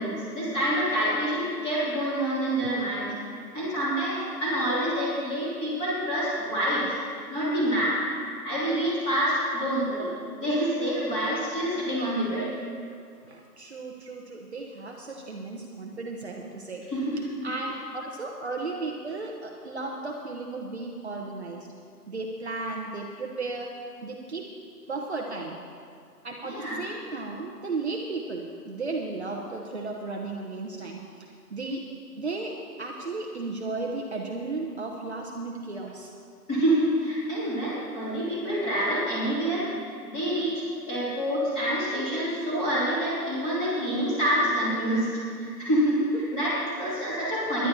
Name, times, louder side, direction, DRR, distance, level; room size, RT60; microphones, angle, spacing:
voice 1, 0.0-3.1 3.5-6.9 7.3-8.0 8.4-12.5 16.9-17.5 26.4-26.8 36.5-39.7 40.0-46.0 46.3-47.7, equal, 10° left, -9 dB, 2.9 m, -27 dB
voice 2, 13.3-21.7 22.1-23.7 24.0-24.5 24.9-25.6 26.2-31.9 32.2-36.1 46.1-46.2, right 3 dB, 40° right, 0 dB, 1.1 m, -35 dB
24.5 x 11.0 x 2.9 m, 2.2 s
figure-of-eight pair, 155°, 49 cm